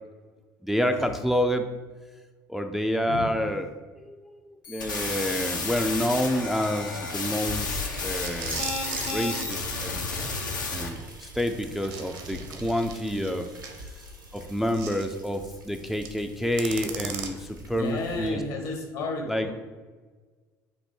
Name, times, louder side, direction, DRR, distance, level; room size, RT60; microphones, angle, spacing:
voice 1, 0.6-1.7 2.5-3.7 4.0-8.8 9.0-10.1 10.7-13.5 13.8-14.0 14.3-18.4 19.3-19.5, equal, ahead, 6 dB, 0.3 m, -28 dB
sound 1, 4.6-10.9, left 3 dB, 80° left, 0.6 m, -32 dB
sound 2, 4.9-18.3, left 1 dB, 90° right, 0.9 m, -43 dB
sound 3, 8.0-13.8 14.7-15.1 15.9-16.2 16.6-17.8, right 6 dB, 55° right, 0.7 m, -39 dB
voice 2, 17.7-19.5, left 2 dB, 60° left, 2 dB, 1.2 m, -33 dB
5.1 x 2.6 x 3.5 m, 1.4 s
figure-of-eight pair, 60°, 10 cm